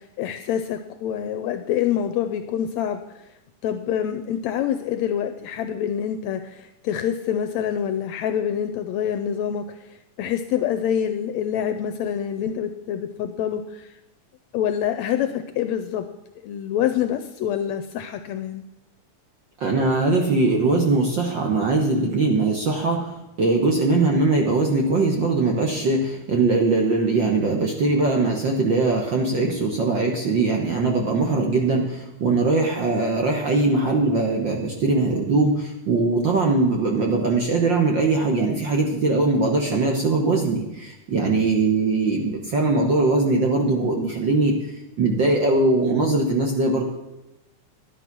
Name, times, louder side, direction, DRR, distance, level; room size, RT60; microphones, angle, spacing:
voice 1, 0.2-3.0 3.6-9.6 10.2-13.8 14.5-16.1 16.4-18.6, left 9 dB, 75° left, 8 dB, 1.7 m, -26 dB
voice 2, 19.6-23.1 23.4-44.6 45.0-46.8, right 3 dB, 50° right, 1 dB, 1.4 m, -21 dB
12.5 x 9.8 x 6.0 m, 0.95 s
omnidirectional pair, 3.6 m